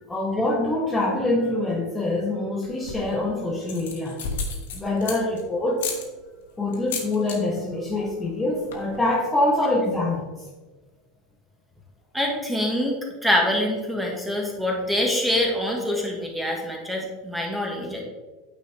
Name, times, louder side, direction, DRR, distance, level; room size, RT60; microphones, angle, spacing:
voice 1, 0.1-4.2 4.7-5.9 6.6-10.3, left 2 dB, 10° left, -4 dB, 1.0 m, -25 dB
sound 1, 2.7-3.2 3.6-5.4 5.8-6.0 6.7-7.4 7.7-8.0 8.2-8.3 8.5-9.0, left 5 dB, 65° left, 1.2 m, -32 dB
voice 2, 12.1-18.0, left 1 dB, 5° right, -1 dB, 1.6 m, -25 dB
9.1 x 4.1 x 3.5 m, 1.3 s
figure-of-eight pair, 80°, 0 cm